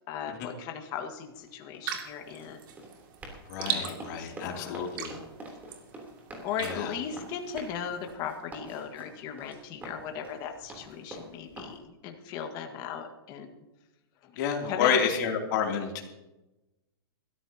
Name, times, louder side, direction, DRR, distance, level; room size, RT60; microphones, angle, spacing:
voice 1, 0.1-2.6 3.7-4.8 6.4-13.6 14.2-14.4 14.7-15.1, left 8 dB, 30° left, 4 dB, 1.7 m, -37 dB
Run, 1.2-11.8, right 1 dB, 15° right, 3.3 m, -46 dB
sound 1, 1.9-8.2, right 8 dB, 55° right, 2.4 m, -40 dB
voice 2, 3.5-5.1 6.6-6.9 14.4-16.0, left 7 dB, 45° left, 2 dB, 2.8 m, -29 dB
21.5 x 13.5 x 2.9 m, 1.0 s
hypercardioid pair, 155°, 13 cm